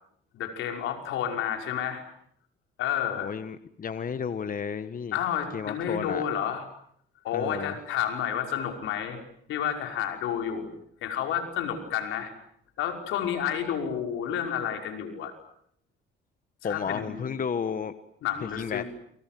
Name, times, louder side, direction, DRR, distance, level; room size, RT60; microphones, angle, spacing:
voice 1, 0.3-2.0 2.8-3.3 5.1-6.6 7.2-9.2 9.5-10.7 11.0-12.3 12.8-15.3 16.6-17.4 18.2-18.8, left 9 dB, 90° left, 4 dB, 5.7 m, -30 dB
voice 2, 3.2-5.2 5.5-6.2 7.3-7.7 16.6-17.9 18.4-18.8, left 6 dB, 45° left, 12 dB, 1.5 m, -32 dB
29.5 x 26.0 x 7.8 m, 0.66 s
cardioid pair, 90°, 20 cm